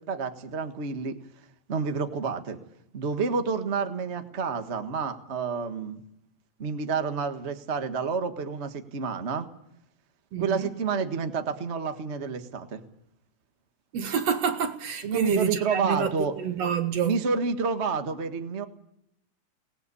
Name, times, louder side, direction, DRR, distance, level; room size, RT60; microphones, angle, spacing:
voice 1, 0.1-1.2 1.7-2.6 2.9-6.0 6.6-9.5 10.4-12.8 15.0-16.3 17.0-18.7, right 5 dB, 35° right, 1.2 m, -29 dB
voice 2, 10.3-10.7 13.9-17.2, right 6 dB, 60° right, 2.4 m, -28 dB
24.5 x 19.0 x 8.4 m
omnidirectional pair, 3.5 m